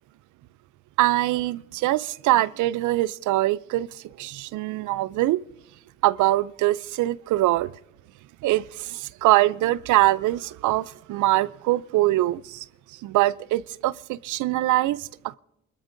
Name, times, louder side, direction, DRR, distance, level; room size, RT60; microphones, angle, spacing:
voice 1, 1.0-5.4 6.0-7.7 8.4-15.4, right 16 dB, 80° right, 0.4 m, -23 dB
27.0 x 13.5 x 2.6 m
cardioid pair, 90°, 30 cm